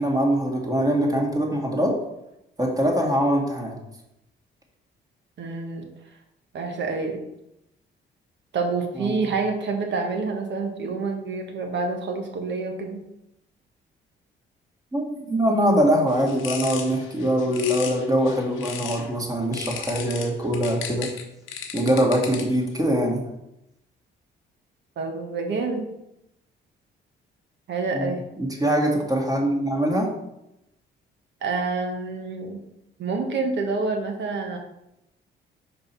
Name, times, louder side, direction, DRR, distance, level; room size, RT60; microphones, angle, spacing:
voice 1, 0.0-1.9 2.6-3.8 9.0-9.1 14.9-21.1 21.7-23.2 27.9-28.1 28.4-30.1, equal, 20° right, -1 dB, 1.9 m, -23 dB
voice 2, 5.4-5.9 6.5-7.2 8.5-13.0 25.0-25.9 27.7-28.3 31.4-32.6 33.0-34.6, right 4 dB, 65° right, 3 dB, 1.4 m, -27 dB
sound 1, 16.1-19.1 19.5-22.7, left 7 dB, 85° left, 0.9 m, -36 dB
5.2 x 4.4 x 5.5 m, 0.86 s
cardioid pair, 90°, 20 cm